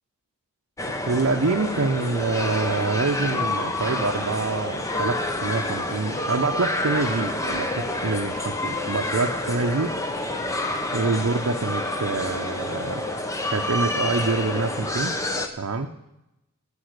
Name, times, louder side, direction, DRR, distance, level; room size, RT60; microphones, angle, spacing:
sound 1, 0.8-15.5, left 1 dB, 15° left, 0.8 m, -28 dB
voice 1, 1.0-9.9 10.9-13.0 13.5-15.2 15.6-15.9, right 3 dB, 70° right, 2 dB, 0.7 m, -26 dB
16.5 x 5.5 x 6.6 m, 0.91 s
head